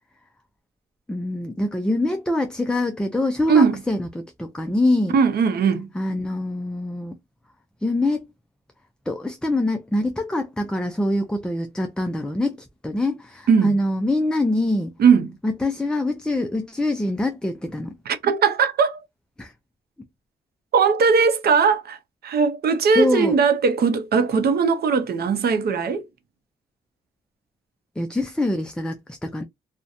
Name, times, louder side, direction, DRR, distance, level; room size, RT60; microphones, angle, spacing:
voice 1, 1.1-5.1 6.0-7.1 7.8-8.2 9.1-12.6 12.8-14.9 15.4-18.0 19.4-19.5 23.0-23.4 28.0-29.4, left 1 dB, 5° left, 0.3 m, -24 dB
voice 2, 3.5-3.8 5.1-5.9 13.5-13.8 15.0-15.3 18.1-19.0 20.7-22.0 22.2-26.0, right 5 dB, 55° right, 0.6 m, -19 dB
2.6 x 2.1 x 2.4 m
cardioid pair, 90°, 20 cm